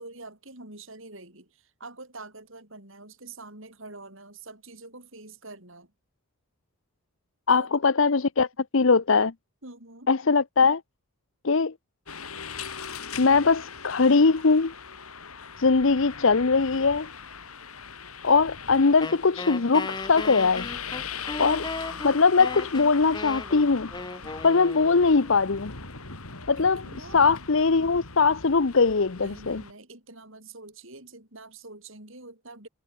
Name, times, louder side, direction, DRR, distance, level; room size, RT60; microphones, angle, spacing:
voice 1, 0.0-5.9 7.5-7.7 9.6-10.1 26.6-27.3 29.2-32.7, right 2 dB, 65° right, 7.1 m, -45 dB
voice 2, 7.5-8.5 8.7-9.3 10.1-10.8 11.4-11.7 13.2-14.7 15.6-17.1 18.2-20.7 21.4-21.7 22.0-23.9 24.4-25.7 26.5-26.8 27.1-29.6, left 4 dB, 65° left, 0.8 m, -21 dB
sound 1, 12.1-29.7, left 6 dB, 85° left, 4.5 m, -40 dB
Wind instrument woodwind instrument, 19.0-25.3, left 3 dB, 20° left, 0.7 m, -36 dB
head